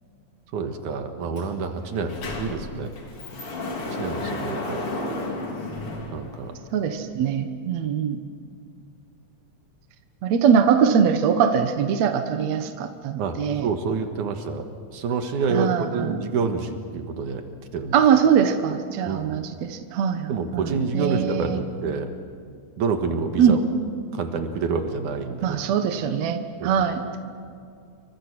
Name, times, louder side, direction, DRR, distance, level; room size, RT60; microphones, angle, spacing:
voice 1, 0.5-2.9 4.0-4.9 6.1-6.5 13.2-17.5 17.7-18.0 19.0-19.4 20.3-22.1 22.8-23.6 24.1-25.6 26.6-27.2, right 4 dB, 80° right, 6 dB, 3.0 m, -28 dB
Sliding door, 1.4-1.5 1.8-6.8, left 2 dB, 50° left, 3.7 m, -32 dB
voice 2, 6.7-8.2 10.2-13.7 15.5-16.2 17.9-21.6 23.4-23.6 25.4-27.0, right 7 dB, 65° right, 7 dB, 2.4 m, -22 dB
29.0 x 24.5 x 6.1 m, 2.3 s
omnidirectional pair, 3.5 m